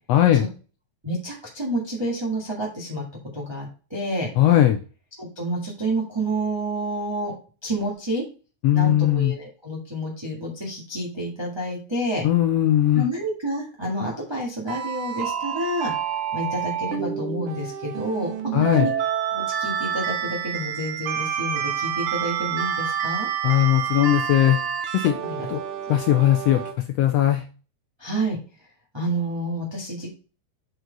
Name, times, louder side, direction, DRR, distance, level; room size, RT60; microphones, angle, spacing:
voice 1, 0.1-0.5 4.4-4.8 8.6-9.3 12.2-13.1 18.5-18.9 23.4-24.6 24.9-25.2 25.5-25.6 25.9-26.6 26.9-27.4, left 12 dB, 80° left, 6 dB, 1.5 m, -19 dB
voice 2, 1.0-3.0 3.3-4.3 5.2-7.3 7.6-8.2 8.7-12.2 12.9-15.9 16.3-18.9 19.3-23.3 25.2-25.5 28.0-28.4 28.9-30.1, right 1 dB, 10° right, -3 dB, 1.3 m, -29 dB
sound 1, 14.7-26.7, right 8 dB, 75° right, 1.3 m, -28 dB
7.8 x 4.5 x 4.0 m, 0.36 s
omnidirectional pair, 3.4 m